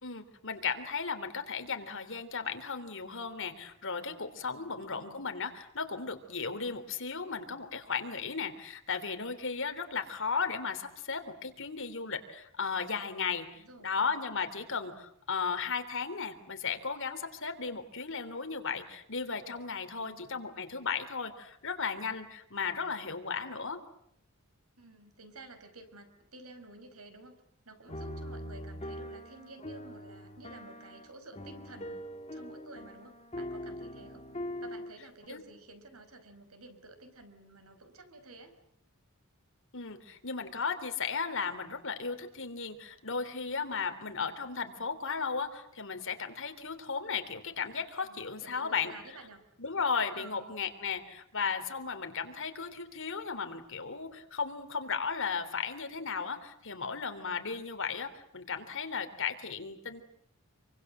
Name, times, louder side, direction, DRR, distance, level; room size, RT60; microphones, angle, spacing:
voice 1, 0.0-23.8 35.3-35.4 39.7-48.9 49.6-60.0, left 5 dB, 60° left, 7 dB, 3.4 m, -35 dB
voice 2, 4.5-5.3 13.5-14.1 19.9-20.3 24.8-34.2 34.6-38.5 44.0-44.3 48.0-49.4 50.1-50.7, right 2 dB, 75° right, 8 dB, 5.2 m, -52 dB
sound 1, 27.9-35.3, left 1 dB, 30° left, 2.0 m, -42 dB
28.0 x 24.5 x 7.9 m, 0.72 s
head